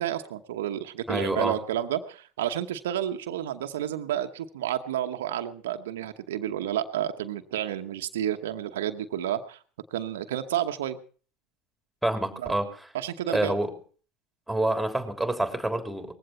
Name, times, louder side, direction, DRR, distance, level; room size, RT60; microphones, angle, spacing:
voice 1, 0.0-9.6 9.9-11.0 12.4-12.6 12.9-13.5, right 11 dB, 75° right, 7 dB, 1.0 m, -30 dB
voice 2, 1.1-1.6 12.0-12.9 13.3-13.7 14.5-16.1, right 1 dB, ahead, 6 dB, 3.4 m, -27 dB
19.5 x 15.5 x 4.3 m, 0.41 s
hypercardioid pair, 75°, 0 cm